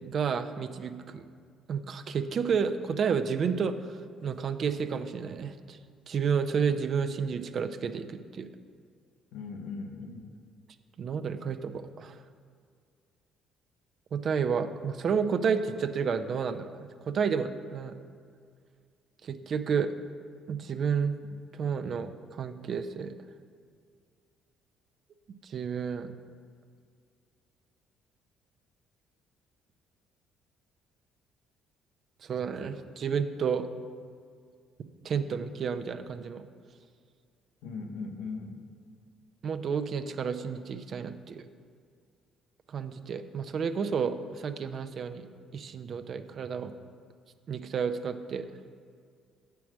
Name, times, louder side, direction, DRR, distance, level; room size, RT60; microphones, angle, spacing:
voice 1, 0.0-1.2 1.7-3.8 4.2-5.8 6.1-8.5 11.0-12.2 14.1-18.0 19.2-19.9 20.5-21.1 21.5-23.2 25.4-26.1 32.2-33.7 35.0-36.4 39.4-41.4 42.7-45.3 45.5-46.7 47.5-48.5, right 6 dB, 55° right, 9 dB, 0.4 m, -31 dB
voice 2, 9.3-10.3 37.6-38.6, left 4 dB, 85° left, 4 dB, 0.8 m, -39 dB
7.3 x 4.6 x 6.1 m, 2.1 s
supercardioid pair, 80°, 0 cm